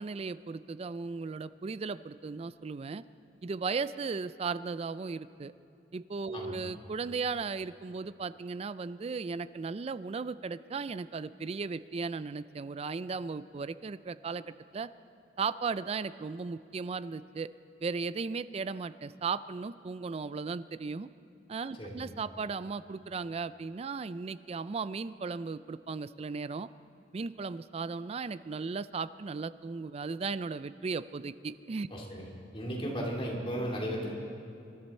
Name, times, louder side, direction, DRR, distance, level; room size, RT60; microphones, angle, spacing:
voice 1, 0.0-3.0 3.4-5.5 5.9-14.9 15.4-17.5 17.8-21.1 21.5-26.7 27.1-31.9, right 4 dB, 35° right, 15 dB, 0.4 m, -36 dB
voice 2, 31.9-32.2 32.5-34.1, equal, 30° left, -2 dB, 2.7 m, -35 dB
27.0 x 12.0 x 4.3 m, 2.7 s
head